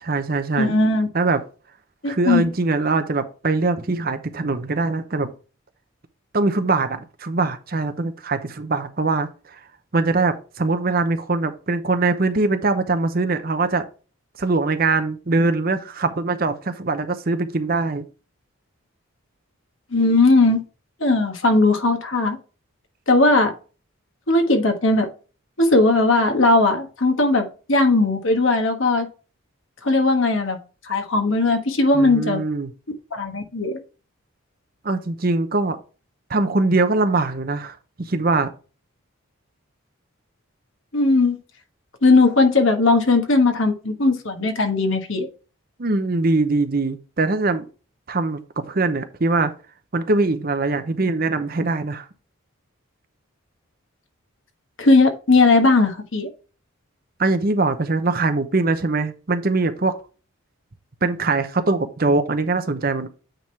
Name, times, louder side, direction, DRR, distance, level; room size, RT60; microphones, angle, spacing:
voice 1, 0.0-0.7 1.1-1.4 2.1-5.3 6.3-9.6 9.9-13.8 14.4-18.1 31.9-32.7 34.8-35.8 36.3-38.5 45.8-47.7 48.1-49.5 49.9-52.1 57.2-60.0 61.0-63.1, right 3 dB, 40° right, 0.7 m, -22 dB
voice 2, 0.6-1.1 2.0-2.5 19.9-20.6 21.0-22.4 23.1-23.5 24.3-25.1 25.6-29.1 29.8-30.6 30.9-32.4 33.1-33.8 40.9-41.4 42.0-45.3 54.8-56.3, left 2 dB, 65° left, 1.4 m, -18 dB
9.0 x 3.6 x 4.4 m
head